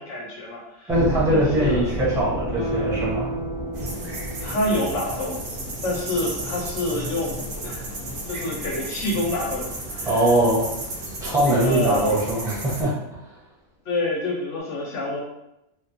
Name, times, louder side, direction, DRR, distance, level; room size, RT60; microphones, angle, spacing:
voice 1, 0.0-0.9 1.3-1.9 4.4-5.4 5.8-7.4 7.6-7.8 8.3-9.7 9.9-10.2 11.6-12.2 13.9-15.2, left 1 dB, 65° left, -2 dB, 0.9 m, -27 dB
sound 1, 0.9-11.7, left 1 dB, 80° left, 0.4 m, -34 dB
voice 2, 0.9-3.4 10.1-10.7 11.2-13.0, right 1 dB, 5° right, -7 dB, 0.5 m, -21 dB
Guitar, 2.5-5.8 6.2-6.3, right 2 dB, 45° left, 0.7 m, -34 dB
sound 2, 3.7-12.8, right 1 dB, 75° right, 0.3 m, -33 dB
2.7 x 2.2 x 2.5 m, 0.86 s
omnidirectional pair, 1.4 m